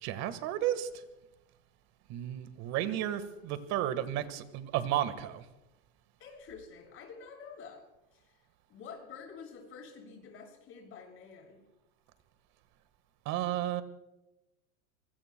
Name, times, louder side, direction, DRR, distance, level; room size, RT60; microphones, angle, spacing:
voice 1, 0.0-0.9 2.1-5.4 13.2-13.8, right 12 dB, 40° right, 12 dB, 1.5 m, -33 dB
voice 2, 6.2-7.9 8.1-8.4 8.7-11.6, left 5 dB, 30° left, 0 dB, 7.0 m, -48 dB
24.0 x 22.0 x 2.2 m, 0.97 s
supercardioid pair, 135°, 41 cm